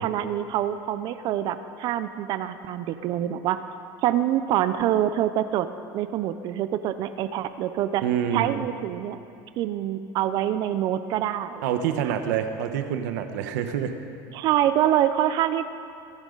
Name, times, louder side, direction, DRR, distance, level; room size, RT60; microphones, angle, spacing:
voice 1, 0.0-3.6 4.0-5.7 5.9-8.0 8.3-9.2 9.6-11.6 12.1-12.2 14.3-15.7, right 11 dB, 50° right, 12 dB, 0.6 m, -25 dB
voice 2, 8.0-8.6 11.6-14.0, right 9 dB, 80° right, 7 dB, 1.2 m, -27 dB
22.5 x 11.5 x 4.0 m, 2.7 s
supercardioid pair, 140°, 9 cm